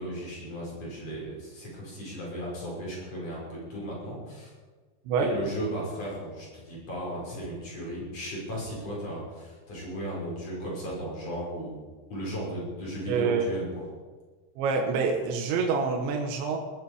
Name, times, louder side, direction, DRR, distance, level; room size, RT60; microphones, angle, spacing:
voice 1, 0.0-4.5 5.2-11.8 12.1-13.8, equal, 35° left, -4 dB, 6.6 m, -35 dB
voice 2, 13.1-13.5 14.6-16.6, right 5 dB, 75° right, 2 dB, 3.6 m, -26 dB
20.0 x 14.0 x 5.0 m, 1.4 s
omnidirectional pair, 5.3 m